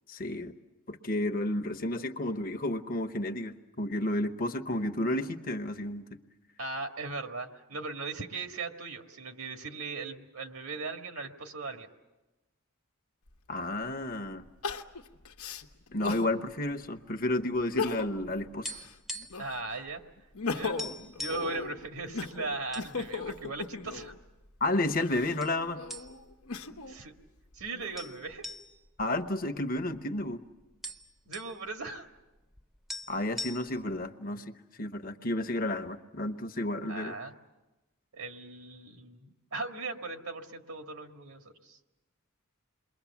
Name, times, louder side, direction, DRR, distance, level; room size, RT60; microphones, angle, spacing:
voice 1, 0.1-0.5 0.9-6.0 13.5-14.4 15.9-18.8 24.6-25.8 29.0-30.4 33.1-37.1, left 1 dB, 40° left, 8 dB, 1.0 m, -31 dB
voice 2, 6.6-11.9 19.4-20.0 20.5-20.9 21.2-24.1 26.9-27.1 27.5-28.4 31.3-32.1 36.9-37.3 38.1-41.8, right 3 dB, 75° right, 5 dB, 1.8 m, -38 dB
Crying sobbing, 13.3-13.4 14.6-16.3 16.8-16.9 17.6-18.3 18.7-19.7 20.2-24.2 24.9-27.0 27.5-28.3, left 4 dB, 85° left, 1.1 m, -37 dB
sound 1, 18.5-19.5 19.8-20.0 20.3-20.4 20.8-21.5 22.2-22.9 23.3-23.4 24.1-24.7 25.4-25.6 25.9-26.4 26.8-26.9 28.0-30.0 30.3-30.4 30.6-31.5 32.6-32.7 32.9-34.0, left 1 dB, ahead, 0.7 m, -41 dB
28.5 x 22.0 x 7.2 m, 1.1 s
head